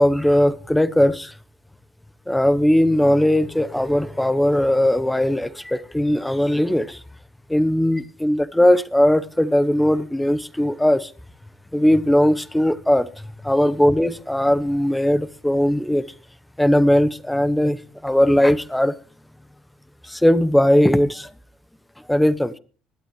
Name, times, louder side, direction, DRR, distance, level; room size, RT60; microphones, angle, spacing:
voice 1, 0.0-1.3 2.3-7.0 7.5-11.1 11.7-13.1 13.4-16.0 16.6-18.9 20.0-21.3 22.1-22.5, left 1 dB, 5° left, 1.0 m, -19 dB
21.0 x 12.5 x 3.2 m
cardioid pair, 105°, 0 cm